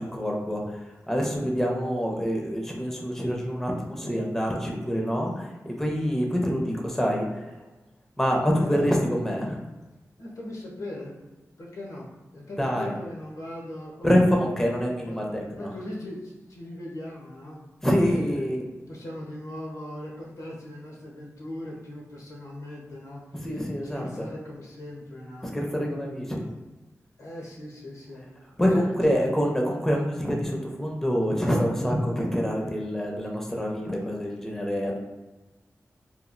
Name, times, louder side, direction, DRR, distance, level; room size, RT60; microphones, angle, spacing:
voice 1, 0.0-7.6 8.2-9.6 12.6-12.9 14.0-15.7 17.8-18.6 23.3-24.3 25.4-26.4 28.6-35.0, equal, 5° left, -1 dB, 0.4 m, -26 dB
voice 2, 8.5-8.9 10.2-11.1 11.6-12.1 12.3-14.4 15.0-15.2 15.6-17.6 18.2-18.5 18.9-23.5 23.9-25.5 27.2-28.3 28.6-29.2, left 1 dB, 85° left, -3 dB, 0.8 m, -39 dB
2.9 x 2.3 x 2.5 m, 1.1 s
wide cardioid pair, 110°, 6 cm